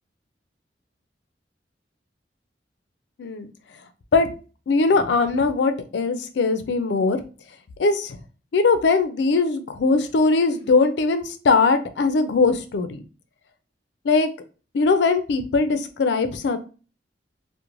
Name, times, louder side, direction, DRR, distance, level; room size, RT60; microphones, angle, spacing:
voice 1, 4.7-7.2 7.8-8.2 8.5-13.0 14.0-14.3 14.7-16.6, left 4 dB, 70° left, 8 dB, 0.4 m, -20 dB
2.4 x 2.1 x 3.0 m, 0.35 s
head